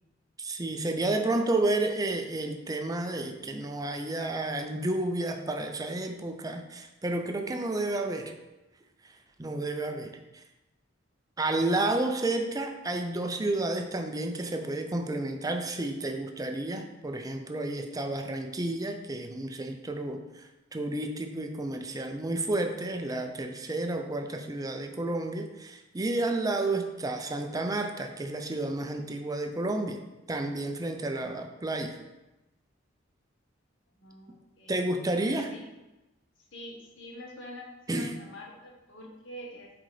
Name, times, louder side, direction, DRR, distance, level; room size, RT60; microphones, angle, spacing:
voice 1, 0.4-8.3 9.4-10.2 11.4-30.0 30.3-32.0 34.7-35.5 37.9-38.1, right 2 dB, 20° right, 5 dB, 0.5 m, -31 dB
voice 2, 34.0-34.7 35.2-35.6 36.5-39.7, left 1 dB, 75° left, -1 dB, 1.3 m, -46 dB
7.6 x 3.9 x 3.3 m, 1.0 s
head